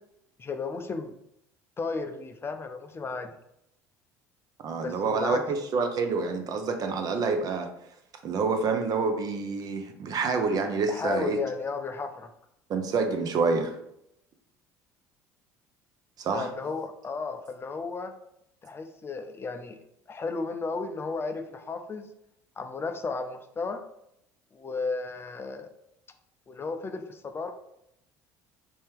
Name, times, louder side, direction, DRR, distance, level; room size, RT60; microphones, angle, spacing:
voice 1, 0.4-1.1 1.8-3.3 4.8-5.4 10.9-12.3 16.3-18.1 18.6-19.8 20.1-22.1 22.6-23.8 24.5-25.7 26.5-27.5, left 4 dB, 30° left, 7 dB, 0.4 m, -34 dB
voice 2, 4.6-7.7 8.2-11.4 12.7-13.8 16.2-16.5, right 4 dB, 50° right, 5 dB, 0.6 m, -27 dB
3.4 x 2.8 x 3.5 m, 0.78 s
hypercardioid pair, 70°, 9 cm